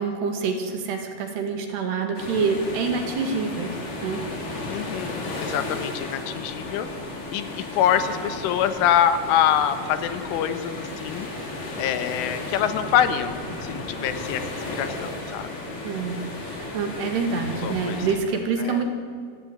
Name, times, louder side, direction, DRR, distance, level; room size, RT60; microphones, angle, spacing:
voice 1, 0.0-3.7 4.0-4.2 11.7-11.9 15.8-18.8, right 5 dB, 60° right, 5 dB, 3.9 m, -27 dB
sound 1, 2.1-18.1, left 2 dB, 45° left, 5.3 m, -34 dB
voice 2, 4.7-6.9 7.3-11.3 11.8-15.5 17.6-18.0 18.6-18.8, left 9 dB, 80° left, 10 dB, 3.5 m, -25 dB
26.5 x 15.5 x 9.9 m, 2.1 s
omnidirectional pair, 5.8 m